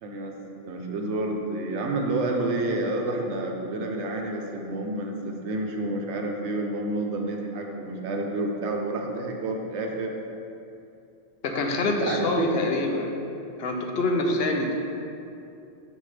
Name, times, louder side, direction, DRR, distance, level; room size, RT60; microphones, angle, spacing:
voice 1, 0.0-10.1 11.8-12.6, right 2 dB, 90° right, 2 dB, 1.0 m, -29 dB
voice 2, 11.4-13.1 13.6-14.7, left 2 dB, 65° left, 3 dB, 0.8 m, -26 dB
6.9 x 5.3 x 3.3 m, 2.7 s
omnidirectional pair, 1.1 m